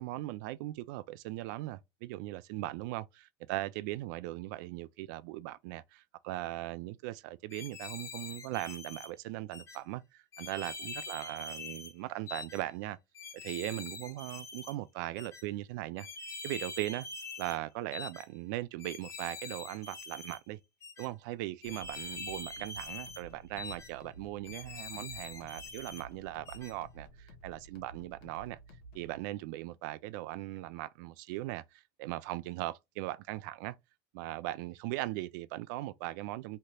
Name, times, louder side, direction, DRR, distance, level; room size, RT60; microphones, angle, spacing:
voice 1, 0.0-13.0 13.3-16.1 16.4-17.1 17.4-20.6 21.0-28.6 28.9-33.8 34.1-36.6, right 17 dB, 75° right, 0.4 m, -39 dB
sound 1, 7.5-9.1 9.5-9.8 10.3-11.9 12.3-12.6 13.1-14.7 15.2-15.4 16.0-17.6 17.9-18.3 18.8-20.4 20.8-21.1 21.6-23.2 23.6-23.9 24.4-26.0 26.5-26.7, left 3 dB, 30° left, 0.7 m, -44 dB
sound 2, 21.7-29.2, right 2 dB, 75° left, 1.0 m, -53 dB
3.2 x 2.8 x 2.2 m
supercardioid pair, 120°, 10 cm